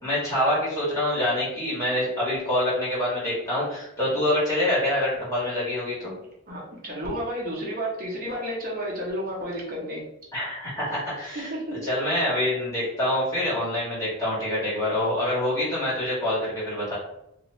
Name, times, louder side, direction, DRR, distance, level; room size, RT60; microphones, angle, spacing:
voice 1, 0.0-6.1 10.3-11.5 11.8-17.0, left 1 dB, 15° left, -9 dB, 1.4 m, -26 dB
voice 2, 6.5-10.0 11.3-11.8, equal, 40° right, -3 dB, 0.9 m, -31 dB
2.5 x 2.4 x 3.1 m, 0.81 s
head